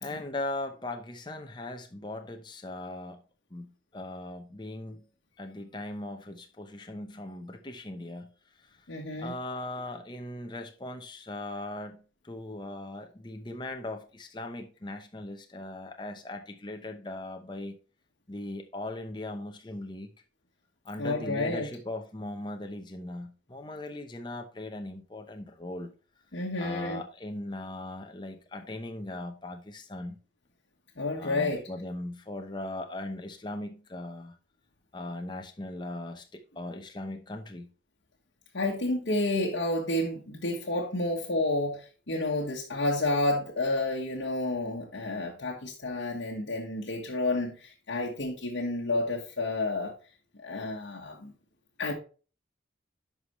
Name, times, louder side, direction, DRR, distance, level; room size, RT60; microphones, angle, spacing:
voice 1, 0.0-3.2 3.5-5.1 5.4-8.3 9.2-17.8 18.3-20.1 20.8-25.9 26.6-30.2 31.2-34.4 34.9-37.7, left 2 dB, 25° left, 0.8 m, -39 dB
voice 2, 8.9-9.3 21.0-21.7 26.3-27.0 31.0-31.6 38.5-49.9 50.4-51.3 51.8-51.9, left 2 dB, 75° left, 1.3 m, -30 dB
10.5 x 4.9 x 3.1 m
head